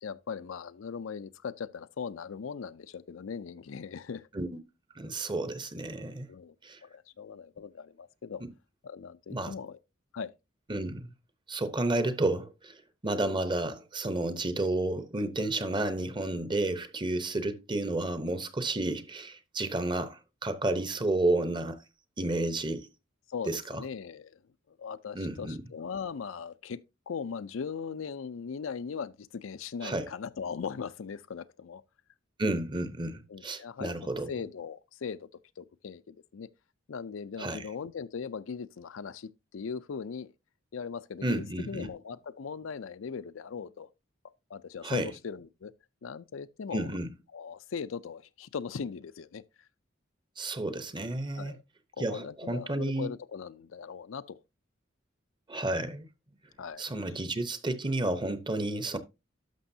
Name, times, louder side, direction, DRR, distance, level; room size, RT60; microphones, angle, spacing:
voice 1, 0.0-4.3 6.3-6.6 6.8-8.4 8.8-9.8 10.1-10.3 23.3-24.4 24.7-31.8 33.3-35.3 35.6-36.5 36.9-40.3 40.7-43.9 44.5-45.7 46.0-46.9 47.3-49.7 51.4-51.6 52.0-54.4 56.6-57.2, left 6 dB, 80° left, 0.5 m, -39 dB
voice 2, 5.0-6.3 6.6-6.8 8.4-8.5 9.3-9.5 10.7-11.1 11.5-12.8 13.0-21.8 22.2-22.9 23.4-23.8 25.1-25.6 29.8-30.1 32.4-34.3 37.4-37.6 41.2-41.9 44.8-45.1 46.7-47.1 50.4-51.5 52.0-53.1 55.5-56.1 56.8-59.0, right 2 dB, 25° right, 0.8 m, -31 dB
11.5 x 6.3 x 2.7 m
head